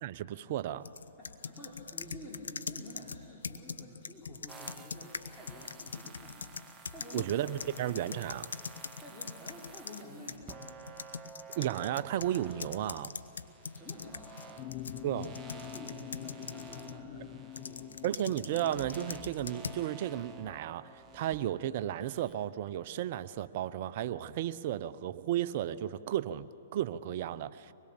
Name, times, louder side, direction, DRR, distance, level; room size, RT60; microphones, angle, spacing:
voice 1, 0.0-0.9 7.1-8.5 11.6-13.1 15.0-15.4 18.0-27.7, right 12 dB, 50° right, 14 dB, 0.7 m, -34 dB
sound 1, 0.8-10.0 10.3-17.0 17.6-19.8, left 5 dB, 80° left, 0.8 m, -43 dB
voice 2, 1.2-6.6 6.9-7.8 9.0-10.8 13.6-14.8 15.1-18.1, left 1 dB, 10° left, -6 dB, 4.0 m, -50 dB
sound 2, 4.5-22.3, right 4 dB, 20° right, 1.5 m, -52 dB
sound 3, 14.6-21.8, left 14 dB, 45° left, 0.6 m, -47 dB
24.0 x 21.0 x 7.1 m, 2.6 s
hypercardioid pair, 115°, 0 cm